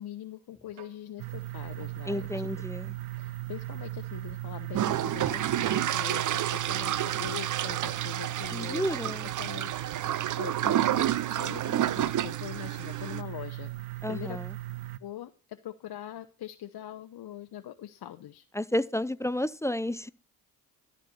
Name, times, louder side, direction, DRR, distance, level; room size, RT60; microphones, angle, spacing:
voice 1, 0.0-2.5 3.1-8.8 9.4-13.7 14.1-14.4 15.0-18.4, left 11 dB, 55° left, 0.9 m, -43 dB
sound 1, 0.7-1.4 1.8-2.8 3.5-3.6 5.2-5.3 5.6-6.4 7.8-8.7 9.7-9.8, right 10 dB, 60° right, 1.3 m, -47 dB
sound 2, 1.2-15.0, right 16 dB, 80° right, 0.7 m, -38 dB
voice 2, 2.1-2.9 8.5-9.3 14.0-14.5 18.5-20.1, left 1 dB, 5° left, 0.4 m, -31 dB
sound 3, 4.7-13.2, right 11 dB, 40° right, 0.6 m, -30 dB
13.0 x 4.4 x 6.8 m
supercardioid pair, 55°, 46 cm